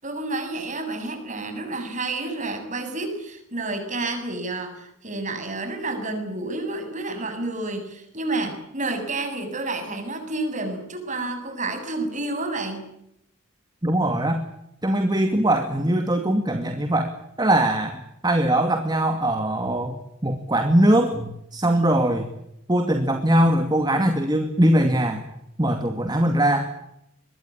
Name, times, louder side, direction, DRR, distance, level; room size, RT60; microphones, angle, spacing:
voice 1, 0.0-12.8, right 2 dB, 35° right, 6 dB, 7.5 m, -30 dB
voice 2, 13.8-14.4 14.8-17.1 17.4-22.3 22.7-25.3 25.6-26.7, right 1 dB, 20° right, 5 dB, 2.3 m, -21 dB
25.0 x 21.5 x 8.7 m, 0.79 s
head